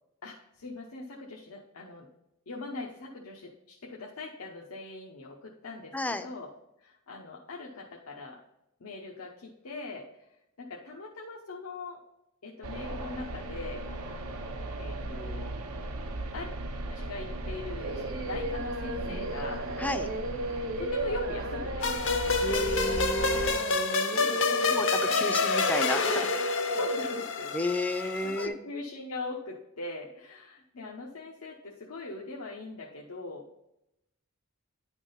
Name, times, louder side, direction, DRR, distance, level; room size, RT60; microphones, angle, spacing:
voice 1, 0.2-2.1 2.5-6.5 6.8-8.4 8.8-10.1 10.6-12.0 12.4-14.2 14.8-15.5 16.3-16.5 16.9-19.6 20.8-22.1 24.1-25.7 26.7-27.5 27.9-33.4, left 2 dB, 90° left, -2 dB, 0.9 m, -41 dB
voice 2, 5.9-6.3 19.8-20.1 22.4-23.6 24.7-26.3 27.5-28.6, left 1 dB, 5° left, 9 dB, 0.4 m, -32 dB
sound 1, 12.6-23.6, right 2 dB, 85° right, 0.9 m, -37 dB
Singing, 17.8-27.2, right 1 dB, 65° right, 1.1 m, -34 dB
sound 2, 21.8-28.5, left 4 dB, 60° left, 0.7 m, -28 dB
10.5 x 3.6 x 5.5 m, 0.84 s
head